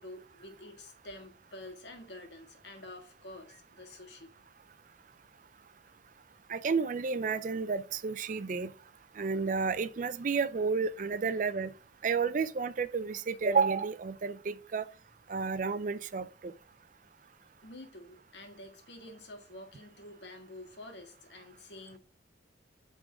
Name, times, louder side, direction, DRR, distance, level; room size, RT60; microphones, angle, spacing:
voice 1, 0.0-4.3 17.6-22.0, left 1 dB, 75° left, 1.7 m, -48 dB
voice 2, 6.5-8.7 9.2-11.7 12.0-14.9 15.3-16.5, right 5 dB, 45° right, 0.4 m, -31 dB
8.3 x 3.8 x 4.9 m
head